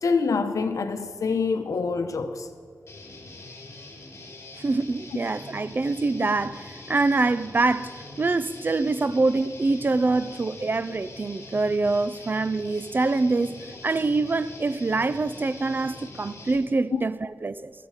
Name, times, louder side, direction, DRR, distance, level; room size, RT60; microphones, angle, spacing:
voice 1, 0.0-2.5 10.1-10.2 16.9-17.0, left 4 dB, 80° left, 1.0 m, -26 dB
Guitar, 2.9-16.6, left 2 dB, 50° left, 3.2 m, -43 dB
voice 2, 4.6-17.1 17.4-17.7, right 3 dB, 35° right, 0.4 m, -25 dB
15.5 x 13.5 x 5.0 m
wide cardioid pair, 115°, 6 cm